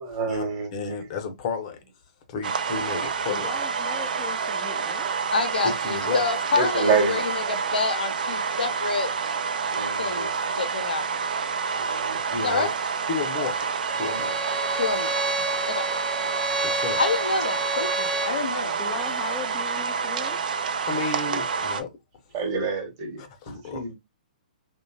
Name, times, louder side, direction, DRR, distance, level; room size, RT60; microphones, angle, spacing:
voice 1, 0.0-1.1 6.5-7.2 9.7-10.3 11.8-12.2 21.0-21.4 22.3-23.9, right 4 dB, 40° right, 1.0 m, -28 dB
voice 2, 0.7-1.8 2.3-3.5 5.8-6.3 11.5-11.6 12.3-12.7 13.1-14.5 16.6-17.0 20.8-21.9 23.2-23.9, left 4 dB, 45° left, 0.7 m, -32 dB
sound 1, 2.4-21.8, right 5 dB, 70° right, 0.4 m, -28 dB
voice 3, 3.3-5.1 18.8-20.4, left 6 dB, 15° left, 0.4 m, -38 dB
voice 4, 5.3-9.1 10.0-10.3 10.6-11.0 12.4-12.7 14.8-15.2 15.7-15.8 17.0-18.8, left 4 dB, 85° left, 0.6 m, -27 dB
Bowed string instrument, 13.9-18.4, right 1 dB, 10° right, 0.7 m, -30 dB
2.8 x 2.2 x 2.6 m
hypercardioid pair, 130°, 5 cm